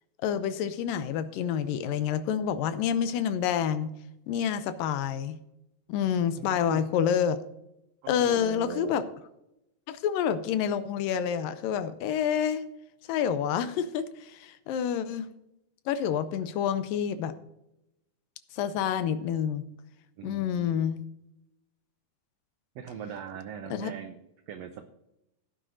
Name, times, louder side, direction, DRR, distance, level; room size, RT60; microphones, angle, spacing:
voice 1, 0.2-3.9 4.3-5.4 5.9-7.4 8.1-9.0 9.9-12.6 13.1-15.3 15.9-17.3 18.5-19.6 20.2-21.0 23.7-23.9, left 8 dB, 85° left, 12 dB, 2.4 m, -28 dB
voice 2, 6.4-6.8 8.0-9.0 20.2-20.8 22.7-24.2 24.5-24.9, right 8 dB, 90° right, 7 dB, 1.4 m, -40 dB
16.0 x 9.2 x 2.6 m, 0.85 s
omnidirectional pair, 3.9 m